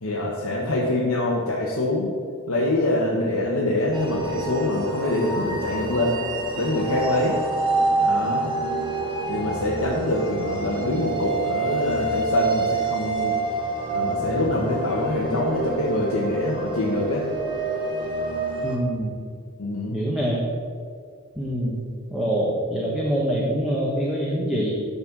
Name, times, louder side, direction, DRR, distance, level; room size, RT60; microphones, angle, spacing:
voice 1, 0.0-2.1 2.5-6.2 6.5-7.3 8.0-8.5 9.3-13.3 13.9-17.3 19.6-20.1, left 1 dB, 90° left, -4 dB, 1.3 m, -25 dB
sound 1, 3.9-18.8, right 3 dB, 20° right, 1.4 m, -27 dB
sound 2, 4.0-9.2, equal, 65° left, 1.3 m, -38 dB
voice 2, 18.6-19.1 19.9-20.4 21.4-21.8 22.1-24.7, equal, 5° right, -5 dB, 1.2 m, -25 dB
11.0 x 4.3 x 7.3 m, 2.1 s
head